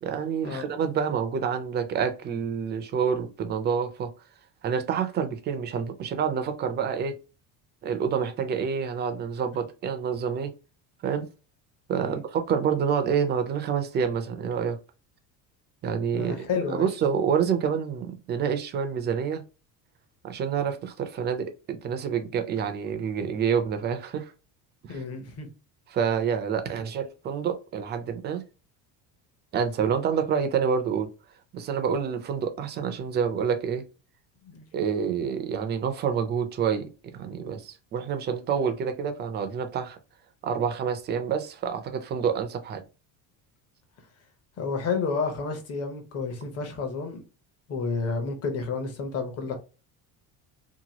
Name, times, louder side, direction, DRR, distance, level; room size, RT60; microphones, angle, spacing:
voice 1, 0.0-4.1 4.6-7.2 7.8-10.5 11.0-11.3 11.9-14.8 15.8-19.4 20.2-24.3 24.8-25.0 25.9-28.4 29.5-31.1 31.5-33.8 34.7-40.0 40.4-42.8, right 7 dB, 30° right, 0.4 m, -28 dB
voice 2, 16.1-16.9 24.9-25.5 34.5-34.6 44.6-47.2 47.7-49.5, left 4 dB, 40° left, 0.8 m, -30 dB
2.9 x 2.2 x 2.8 m
cardioid pair, 160°, 40 cm